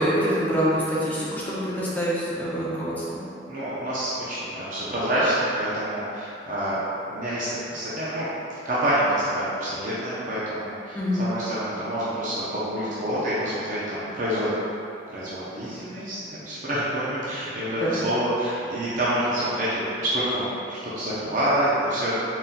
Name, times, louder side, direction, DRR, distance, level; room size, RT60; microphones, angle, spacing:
voice 1, 0.0-3.2 10.9-11.2 17.8-18.0, equal, 10° left, -8 dB, 0.6 m, -25 dB
voice 2, 3.5-6.8 7.0-8.3 8.6-10.9 11.2-14.5 15.1-22.2, right 1 dB, 45° right, -10 dB, 0.6 m, -27 dB
4.0 x 3.8 x 2.2 m, 2.8 s
head